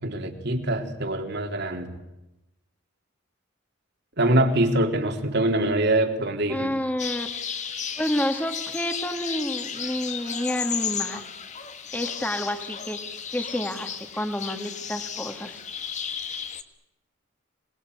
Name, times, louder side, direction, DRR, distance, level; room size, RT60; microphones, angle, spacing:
voice 1, 0.0-1.9 4.2-6.7, right 1 dB, 55° right, 4 dB, 3.7 m, -24 dB
voice 2, 6.5-7.3 8.0-11.2 11.9-15.6, left 1 dB, 10° left, 6 dB, 2.4 m, -29 dB
sound 1, 7.0-16.6, left 7 dB, 35° left, 1.8 m, -34 dB
27.0 x 21.0 x 9.6 m, 0.93 s
head